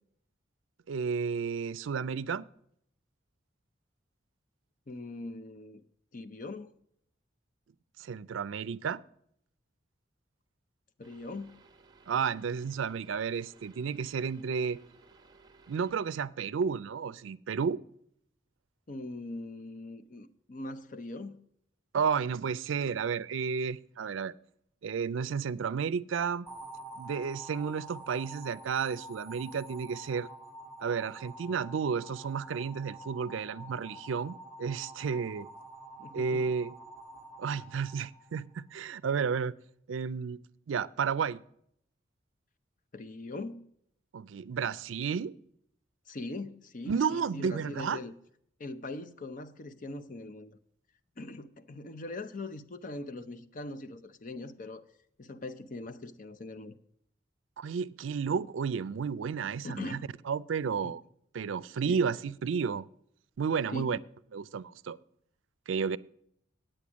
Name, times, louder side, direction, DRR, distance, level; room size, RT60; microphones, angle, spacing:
voice 1, 0.9-2.5 8.0-9.0 12.1-14.8 15.7-17.8 21.9-24.3 24.8-26.5 27.0-30.3 30.8-35.5 36.1-36.7 37.4-39.5 39.9-40.4 40.7-41.4 44.1-45.3 46.9-48.0 57.6-60.0 60.3-61.0 61.3-62.9 63.4-64.0 64.3-65.0 65.7-66.0, right 6 dB, 85° right, 0.4 m, -32 dB
voice 2, 4.9-5.8 6.1-6.8 11.0-11.5 18.9-21.4 36.0-36.5 42.9-43.7 46.1-48.1 48.6-50.6 51.2-54.8 55.2-56.7 59.6-60.1 60.8-60.9 61.8-62.0 63.7-64.0, left 2 dB, 45° left, 0.6 m, -41 dB
sound 1, 11.0-16.0, right 3 dB, 20° right, 1.0 m, -60 dB
sound 2, 26.5-38.6, right 1 dB, ahead, 1.2 m, -48 dB
8.9 x 8.5 x 6.2 m
head